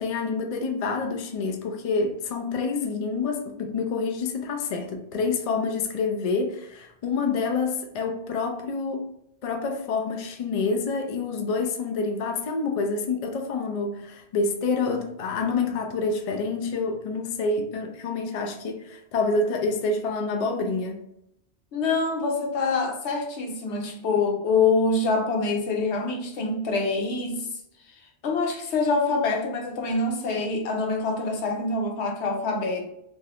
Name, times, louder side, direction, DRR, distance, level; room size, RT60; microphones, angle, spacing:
voice 1, 0.0-9.1 9.4-21.0, left 4 dB, 60° left, 0.3 m, -27 dB
voice 2, 21.7-27.5 28.2-32.9, left 3 dB, 85° left, 1.0 m, -25 dB
2.6 x 2.3 x 3.4 m
omnidirectional pair, 1.1 m